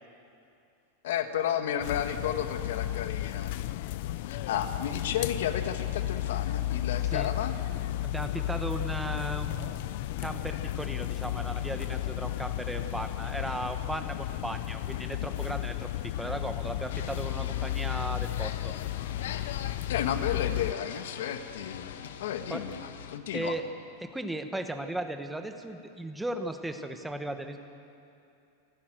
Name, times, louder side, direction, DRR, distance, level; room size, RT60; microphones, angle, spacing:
voice 1, 1.0-3.8 4.3-7.6 19.9-21.9 22.2-22.8 23.1-23.6, left 9 dB, 70° left, 8 dB, 1.4 m, -32 dB
sound 1, 1.8-20.7, left 14 dB, 50° left, 0.5 m, -33 dB
voice 2, 8.0-9.8 10.2-18.7 22.5-22.7 23.3-23.7 24.0-27.6, right 1 dB, 5° right, 6 dB, 0.9 m, -36 dB
sound 2, 16.9-23.2, left 9 dB, 85° left, 1.2 m, -43 dB
28.5 x 11.0 x 9.0 m, 2.6 s
supercardioid pair, 175°, 0 cm